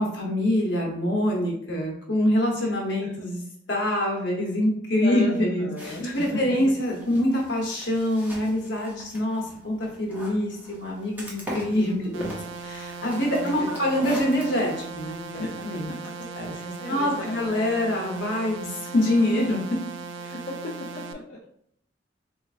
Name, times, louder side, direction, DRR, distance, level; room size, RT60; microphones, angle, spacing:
voice 1, 0.0-3.4 3.7-12.3 12.6-15.9 16.4-16.5 16.9-19.6, left 1 dB, 65° left, -2 dB, 1.1 m, -25 dB
voice 2, 5.0-6.4 11.7-12.3 13.4-13.8 15.3-16.1 16.5-17.5 20.2-20.6 21.0-21.4, left 2 dB, 50° left, -5 dB, 0.5 m, -35 dB
sound 1, 5.8-15.8, equal, 10° right, 0.6 m, -41 dB
sound 2, 12.1-21.1, right 4 dB, 85° right, 0.4 m, -38 dB
3.8 x 3.1 x 2.4 m, 0.69 s
head